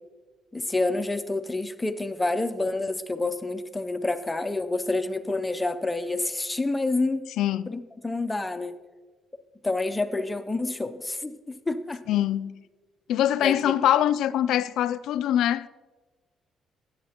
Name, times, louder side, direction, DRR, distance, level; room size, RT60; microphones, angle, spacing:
voice 1, 0.5-7.3 7.7-8.8 9.6-12.0 13.4-13.7, left 2 dB, 15° left, 0.6 m, -28 dB
voice 2, 7.4-7.7 12.1-12.6 13.1-15.7, left 11 dB, 80° left, 0.3 m, -23 dB
14.0 x 8.6 x 2.9 m
cardioid pair, 90°, 0 cm